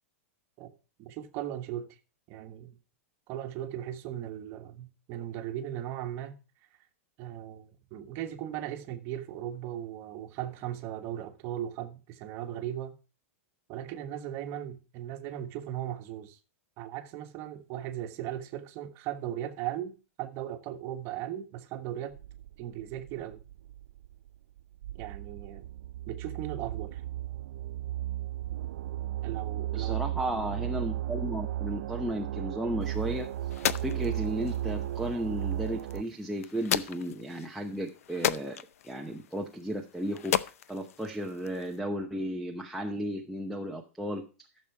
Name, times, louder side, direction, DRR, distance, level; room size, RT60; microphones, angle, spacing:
voice 1, 1.0-1.9 2.3-2.8 3.3-6.4 7.2-13.0 13.7-16.4 16.8-22.2 22.6-23.4 24.9-25.7 26.1-27.0 29.2-30.0, right 11 dB, 35° right, 1.4 m, -37 dB
sound 1, 22.1-36.0, right 13 dB, 65° right, 0.5 m, -35 dB
voice 2, 29.7-33.3 33.8-44.3, equal, ahead, 0.8 m, -34 dB
sound 2, 32.8-41.8, left 10 dB, 80° left, 0.7 m, -36 dB
14.0 x 6.8 x 4.6 m
supercardioid pair, 155°, 8 cm